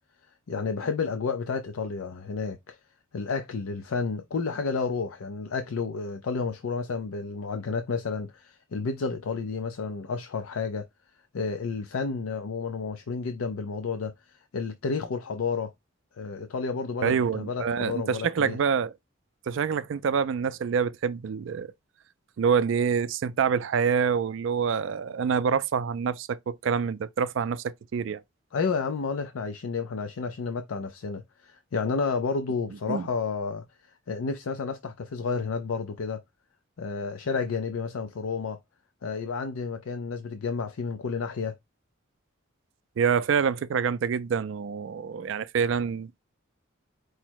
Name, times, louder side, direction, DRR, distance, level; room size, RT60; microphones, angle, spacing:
voice 1, 0.5-2.8 3.1-10.9 11.3-15.7 16.2-18.6 28.5-36.2 36.8-38.6 39.0-41.6, left 5 dB, 90° left, 0.5 m, -31 dB
voice 2, 17.0-18.9 19.5-21.7 22.4-28.2 32.9-33.1 43.0-46.2, right 6 dB, 65° right, 0.3 m, -26 dB
4.7 x 2.0 x 4.5 m
head